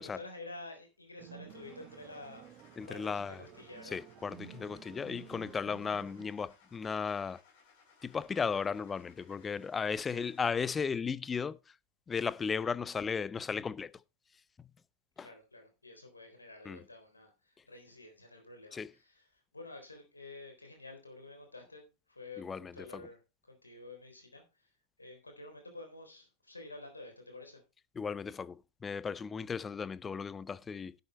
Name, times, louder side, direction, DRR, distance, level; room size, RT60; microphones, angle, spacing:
voice 1, 0.0-2.5 2.8-4.0 10.0-10.3 15.2-23.2 23.5-24.7 25.0-27.6, left 2 dB, 80° left, 3.7 m, -50 dB
sound 1, 1.2-6.3, right 10 dB, 35° right, 1.0 m, -52 dB
Car / Engine starting, 1.5-10.8, left 5 dB, 50° left, 4.4 m, -64 dB
voice 2, 2.8-3.4 3.9-7.4 8.0-11.6 12.1-13.9 15.2-15.3 16.7-16.8 18.7-18.9 22.4-23.0 28.0-30.9, left 6 dB, 20° left, 0.6 m, -35 dB
11.0 x 7.9 x 4.2 m
figure-of-eight pair, 90°, 0 cm